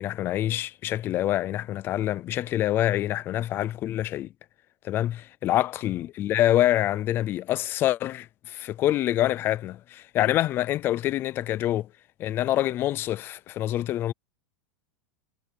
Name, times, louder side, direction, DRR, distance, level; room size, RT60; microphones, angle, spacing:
voice 1, 0.0-4.3 4.8-11.9 12.2-14.1, left 13 dB, 20° left, 0.5 m, -26 dB
supercardioid pair, 170°, 10 cm